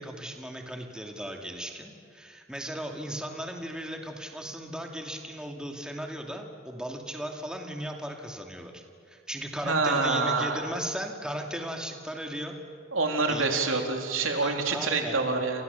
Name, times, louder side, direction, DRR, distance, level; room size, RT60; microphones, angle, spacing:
voice 1, 0.0-12.6 13.3-13.8 14.4-15.2, equal, 5° right, 2 dB, 2.4 m, -37 dB
voice 2, 9.6-10.6 12.9-15.6, right 3 dB, 85° right, 3 dB, 3.5 m, -26 dB
29.5 x 29.0 x 7.0 m, 2.2 s
head